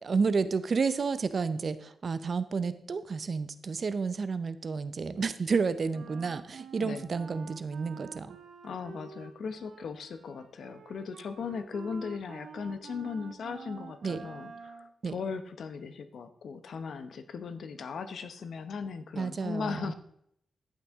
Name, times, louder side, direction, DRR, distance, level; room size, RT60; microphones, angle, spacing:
voice 1, 0.0-8.4 14.0-14.2 15.0-15.2 19.2-19.9, right 5 dB, 45° right, 13 dB, 0.7 m, -31 dB
Wind instrument woodwind instrument, 5.9-14.9, right 5 dB, 90° right, 1.2 m, -48 dB
voice 2, 6.8-7.1 8.6-19.9, left 5 dB, 70° left, 10 dB, 0.8 m, -38 dB
11.5 x 9.1 x 3.6 m, 0.69 s
wide cardioid pair, 125°, 0 cm